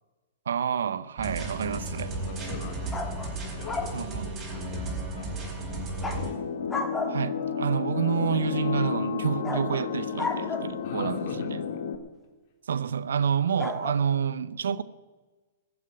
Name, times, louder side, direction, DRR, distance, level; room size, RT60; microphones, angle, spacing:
voice 1, 0.5-2.1 3.9-4.3 7.1-11.6 12.7-14.8, right 7 dB, 75° right, 0.7 m, -28 dB
sound 1, 1.2-6.3, right 2 dB, 25° right, 4.6 m, -34 dB
voice 2, 2.2-3.3 3.6-6.4 10.8-11.9, left 5 dB, 50° left, 3.1 m, -44 dB
sound 2, 2.9-4.0 6.0-6.2 6.7-7.4 9.4-10.9 13.6-13.9, left 3 dB, 15° left, 1.9 m, -33 dB
sound 3, 6.1-12.0, left 7 dB, 70° left, 1.6 m, -31 dB
15.0 x 7.3 x 9.8 m
hypercardioid pair, 120°, 0 cm